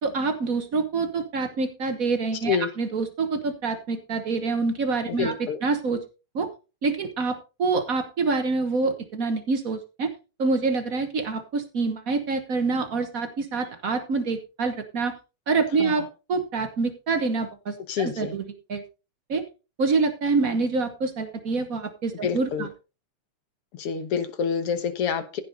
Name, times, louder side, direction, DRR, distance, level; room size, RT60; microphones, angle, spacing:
voice 1, 0.0-5.3 5.6-6.0 6.3-6.5 6.8-10.1 10.4-15.1 15.5-18.4 18.7-18.8 19.3-19.4 19.8-22.7, right 4 dB, 65° right, 7 dB, 0.8 m, -26 dB
voice 2, 5.1-5.6 15.8-15.9 17.9-18.4 22.2-22.7 23.7-25.4, left 6 dB, 60° left, 9 dB, 1.9 m, -27 dB
15.0 x 6.8 x 4.0 m, 0.32 s
omnidirectional pair, 3.4 m